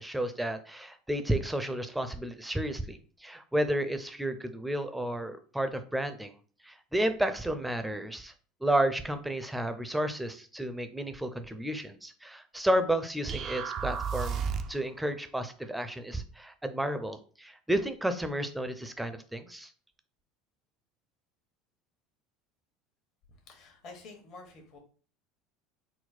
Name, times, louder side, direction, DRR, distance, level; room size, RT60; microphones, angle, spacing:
voice 1, 0.0-6.3 6.6-8.3 8.6-14.4 14.7-19.7, right 1 dB, 5° right, 9 dB, 0.6 m, -32 dB
sound 1, 13.3-14.9, right 6 dB, 45° right, 0.5 m, -33 dB
voice 2, 23.4-24.8, left 3 dB, 55° left, 3 dB, 1.4 m, -49 dB
4.2 x 2.1 x 4.2 m, 0.40 s
hypercardioid pair, 80°, 0 cm